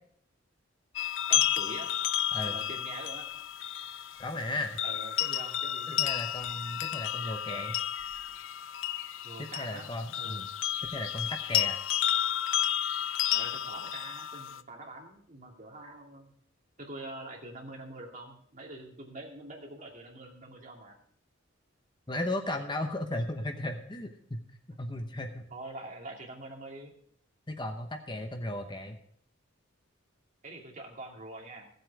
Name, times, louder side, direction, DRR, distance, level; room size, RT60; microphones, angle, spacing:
sound 1, 1.0-14.6, left 11 dB, 85° left, 0.5 m, -32 dB
voice 1, 1.3-1.9 2.4-3.3 4.8-6.2 9.2-9.9 10.2-10.5 13.3-16.3 16.8-21.0 25.5-26.9 30.4-31.7, right 2 dB, 40° right, 0 dB, 2.6 m, -45 dB
voice 2, 4.2-4.8 6.0-7.8 9.4-10.5 10.9-11.8 22.1-24.4 24.7-25.5 27.5-29.0, left 1 dB, 25° left, 5 dB, 0.9 m, -35 dB
15.5 x 8.0 x 4.7 m, 0.64 s
head